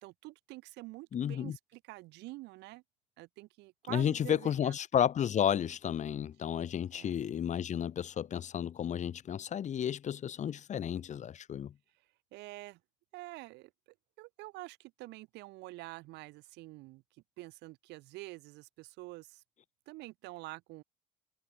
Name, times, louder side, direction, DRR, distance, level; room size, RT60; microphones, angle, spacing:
voice 1, 0.0-2.8 3.2-4.8 6.9-7.1 12.3-12.8 13.1-13.7 14.2-17.0 17.4-19.4 19.9-20.8, right 21 dB, 75° right, 2.1 m, -47 dB
voice 2, 1.1-1.6 3.9-11.7, left 9 dB, 45° left, 2.3 m, -32 dB
cardioid pair, 110°, 17 cm